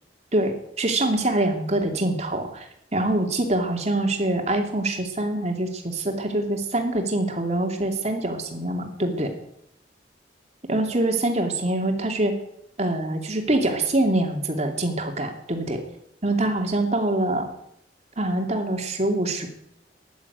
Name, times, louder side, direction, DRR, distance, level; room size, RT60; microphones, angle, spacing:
voice 1, 0.3-2.7 2.9-9.3 10.7-12.4 12.8-15.8 16.2-17.5 18.2-19.5, right 1 dB, 40° right, 3 dB, 2.8 m, -24 dB
15.0 x 11.0 x 8.2 m, 0.76 s
head